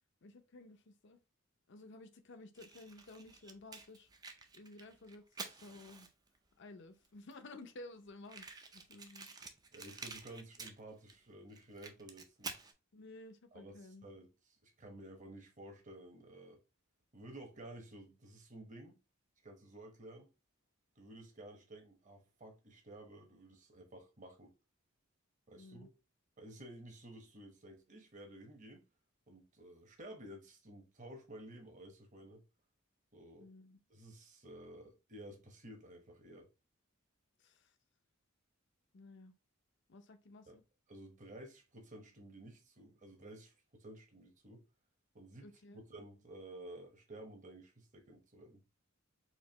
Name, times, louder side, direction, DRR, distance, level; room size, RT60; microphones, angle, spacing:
voice 1, 0.2-1.2 1.7-4.1 4.5-6.1 6.6-9.3 12.9-14.1 25.5-25.9 33.4-33.8 37.4-37.8 38.9-39.3 39.9-40.6 45.4-45.8, left 2 dB, 55° left, 0.6 m, -54 dB
Fire, 2.5-6.4 7.0-7.1 7.3-7.4 7.6-7.7 8.2-11.2 11.5-12.7, right 4 dB, 20° right, 0.4 m, -49 dB
voice 2, 9.7-12.6 13.5-14.3 14.6-16.6 17.1-19.0 19.4-20.3 21.0-24.5 25.5-25.9 26.4-28.8 29.3-32.4 33.1-33.5 33.9-36.5 40.5-40.6 40.9-44.6 45.1-45.5 45.7-48.6, right 1 dB, 35° right, 1.0 m, -53 dB
4.3 x 2.8 x 2.8 m
head